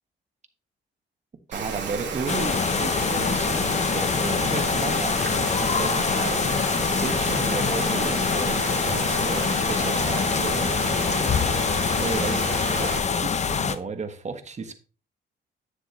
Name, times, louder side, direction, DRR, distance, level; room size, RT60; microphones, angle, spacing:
voice 1, 1.5-14.7, right 4 dB, 35° right, 8 dB, 1.3 m, -34 dB
Rain, 1.5-13.0, right 5 dB, 65° right, 2.8 m, -32 dB
sound 1, 2.3-13.8, left 6 dB, 35° left, 0.7 m, -24 dB
9.7 x 6.8 x 3.0 m, 0.35 s
cardioid pair, 90°, 20 cm